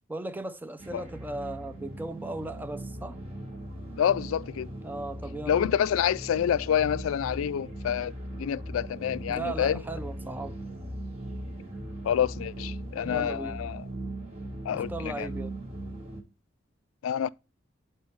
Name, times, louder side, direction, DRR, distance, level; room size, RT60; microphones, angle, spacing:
voice 1, 0.1-3.2 4.8-5.6 9.3-10.6 13.0-13.6 14.7-15.6, right 2 dB, 10° right, 0.3 m, -37 dB
sound 1, 0.8-16.2, right 1 dB, 30° right, 1.4 m, -39 dB
voice 2, 4.0-4.7 5.5-9.8 12.0-13.8 14.6-15.3 17.0-17.3, left 9 dB, 85° left, 0.3 m, -28 dB
9.5 x 4.4 x 3.1 m
head